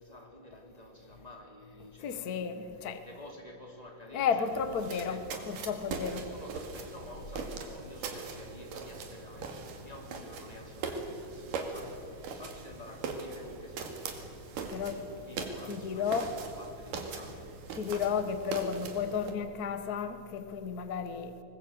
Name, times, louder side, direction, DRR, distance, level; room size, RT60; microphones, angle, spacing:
voice 1, 0.0-5.6 6.1-17.5, left 1 dB, 10° left, 2.8 m, -50 dB
voice 2, 2.0-3.0 4.1-6.2 14.7-15.0 15.7-16.3 17.7-21.3, left 6 dB, 55° left, 1.0 m, -33 dB
sound 1, 4.5-19.3, right 4 dB, 85° right, 3.7 m, -41 dB
23.5 x 20.0 x 7.9 m
omnidirectional pair, 3.7 m